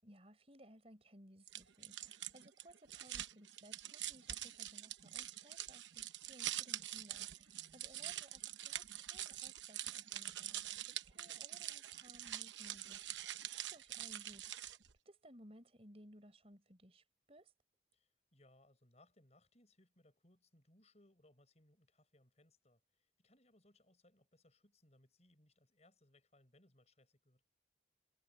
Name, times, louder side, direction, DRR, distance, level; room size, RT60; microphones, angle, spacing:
voice 1, 0.0-14.4 15.0-17.5, equal, 35° right, 4.9 m, -61 dB
sound 1, 1.5-14.9, right 12 dB, 85° right, 0.9 m, -45 dB
voice 2, 7.6-8.1 17.9-27.4, left 1 dB, 35° left, 6.0 m, -70 dB
head